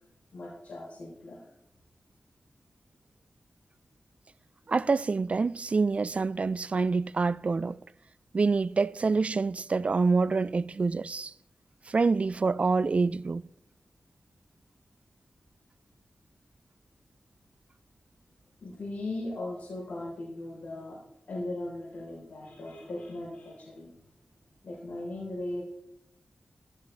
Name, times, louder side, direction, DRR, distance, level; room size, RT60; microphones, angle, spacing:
voice 1, 0.3-1.5 18.6-21.0 21.3-23.9 24.6-25.6, left 2 dB, 80° left, 4.0 m, -38 dB
voice 2, 4.7-7.8 8.3-11.3 11.9-13.4, right 4 dB, 50° right, 0.3 m, -26 dB
13.5 x 13.5 x 3.4 m
cardioid pair, 50°, 3 cm